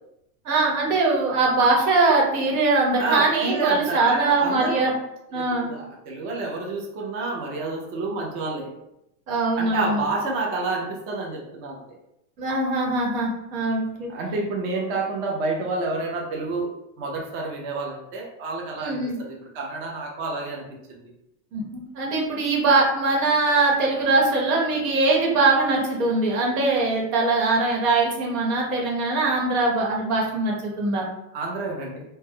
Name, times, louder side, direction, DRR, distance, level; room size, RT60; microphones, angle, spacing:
voice 1, 0.4-4.9 5.3-5.7 9.3-10.0 12.4-14.1 18.8-19.2 21.5-31.0, right 3 dB, 85° right, -2 dB, 1.0 m, -22 dB
voice 2, 3.0-4.9 5.3-8.7 9.6-12.0 14.1-16.7 17.0-20.6 20.9-21.0 31.3-32.0, right 3 dB, 30° right, -1 dB, 0.4 m, -29 dB
2.2 x 2.0 x 3.4 m, 0.84 s
supercardioid pair, 145°, 41 cm